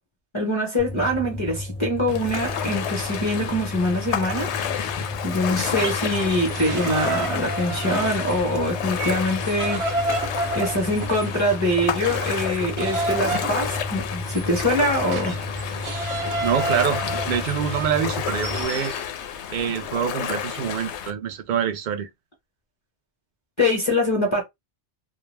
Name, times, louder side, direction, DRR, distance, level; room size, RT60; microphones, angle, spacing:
voice 1, 0.3-4.5 5.2-9.8 10.5-15.4 23.6-24.4, left 1 dB, 30° left, 0.8 m, -24 dB
Empty Computer Room Ambience, 0.8-18.6, left 2 dB, 5° left, 0.4 m, -33 dB
Ocean, 2.1-21.1, left 9 dB, 80° left, 0.9 m, -30 dB
sound 1, 5.8-8.4 8.7-19.0, right 3 dB, 75° right, 0.9 m, -31 dB
voice 2, 16.4-18.9 19.5-22.1, right 8 dB, 60° right, 0.5 m, -26 dB
2.3 x 2.1 x 3.2 m
omnidirectional pair, 1.1 m